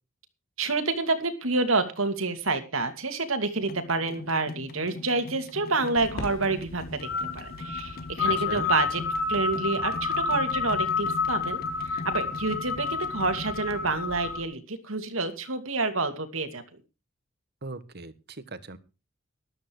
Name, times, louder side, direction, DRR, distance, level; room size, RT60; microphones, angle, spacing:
voice 1, 0.6-16.6, right 3 dB, 75° right, 8 dB, 2.6 m, -28 dB
sound 1, 3.5-13.9, left 2 dB, 45° left, 1.3 m, -42 dB
sound 2, 6.0-14.4, left 5 dB, 75° left, 3.5 m, -30 dB
voice 2, 8.2-8.7 17.6-18.8, right 3 dB, 50° right, 13 dB, 1.5 m, -39 dB
13.5 x 12.5 x 4.8 m, 0.31 s
head